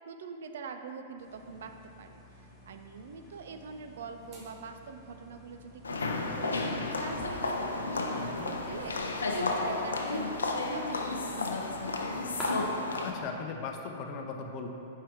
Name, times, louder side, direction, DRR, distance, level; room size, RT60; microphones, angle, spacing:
voice 1, 0.0-11.4, right 5 dB, 70° right, 7 dB, 0.4 m, -44 dB
sound 1, 1.2-12.4, equal, ahead, 1.4 m, -53 dB
sound 2, 4.2-4.5 6.2-9.7 10.4-10.6, right 1 dB, 35° right, 1.2 m, -53 dB
sound 3, 5.8-13.1, left 3 dB, 90° left, 0.5 m, -32 dB
voice 2, 8.2-8.5 13.0-14.7, left 5 dB, 45° left, 3 dB, 0.6 m, -38 dB
4.5 x 4.5 x 5.0 m, 2.7 s
hypercardioid pair, 110°, 0 cm